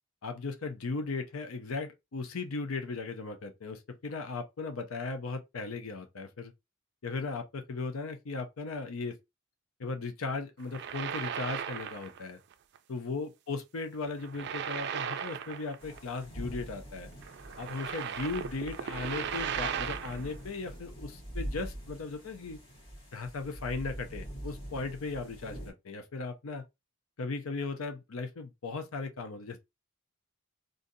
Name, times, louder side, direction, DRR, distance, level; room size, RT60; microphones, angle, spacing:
voice 1, 0.2-6.5 7.0-9.2 9.8-12.4 12.9-17.1 17.6-22.6 23.1-26.6 27.2-29.6, left 3 dB, 80° left, 0.6 m, -37 dB
sound 1, 10.6-12.2 12.5-12.8 14.1-16.0 16.2-16.3 17.2-20.3, right 8 dB, 55° right, 0.4 m, -37 dB
sound 2, 15.8-25.7, right 1 dB, 30° left, 1.7 m, -44 dB
3.8 x 2.5 x 2.6 m
head